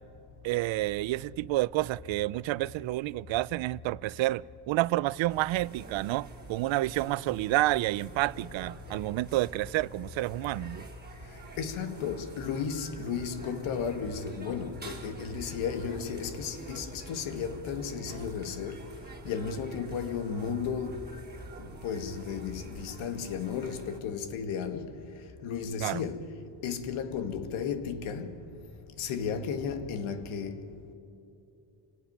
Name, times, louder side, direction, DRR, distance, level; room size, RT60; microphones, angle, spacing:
voice 1, 0.4-10.8 25.8-26.0, right 17 dB, 70° right, 0.6 m, -29 dB
sound 1, 5.3-24.0, right 2 dB, 20° right, 2.7 m, -47 dB
voice 2, 11.6-18.8 19.3-21.1 21.6-24.9 25.4-26.3 26.6-28.4 29.0-30.7, left 6 dB, 90° left, 1.9 m, -34 dB
28.0 x 18.0 x 9.4 m
cardioid pair, 115°, 47 cm